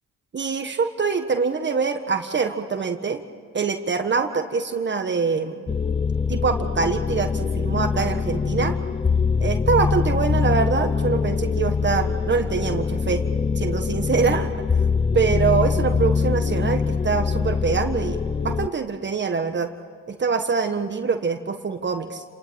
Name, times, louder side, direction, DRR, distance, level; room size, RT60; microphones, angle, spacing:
voice 1, 0.3-3.2 3.5-5.7 6.3-8.7 9.4-13.2 13.5-14.8 15.1-19.7 20.1-22.2, right 5 dB, 35° right, 6 dB, 1.5 m, -24 dB
sound 1, 5.7-18.7, left 5 dB, 20° left, 0.6 m, -23 dB
29.5 x 19.5 x 8.9 m, 2.1 s
cardioid pair, 90°, 30 cm